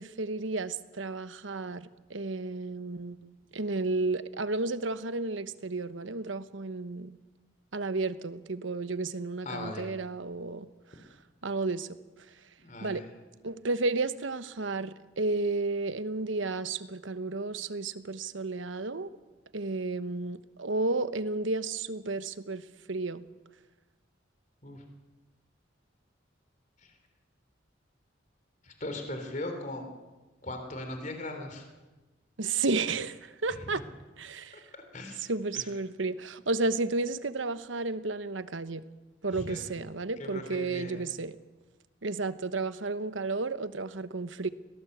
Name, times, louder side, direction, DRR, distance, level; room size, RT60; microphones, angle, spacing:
voice 1, 0.0-7.2 7.7-10.7 11.4-11.9 12.8-13.0 13.4-19.1 19.5-22.6 22.9-23.2 32.4-33.8 34.2-34.6 35.3-38.8 39.2-41.4 42.0-44.5, right 3 dB, 80° right, 13 dB, 1.1 m, -32 dB
voice 2, 9.4-9.9 12.6-13.1 24.6-24.8 26.8-26.9 28.6-29.9 30.4-31.7 33.5-33.7 34.7-35.2 35.5-35.7 39.3-39.7 40.2-41.1, left 1 dB, 40° left, 5 dB, 3.4 m, -39 dB
24.0 x 18.0 x 8.0 m, 1.2 s
head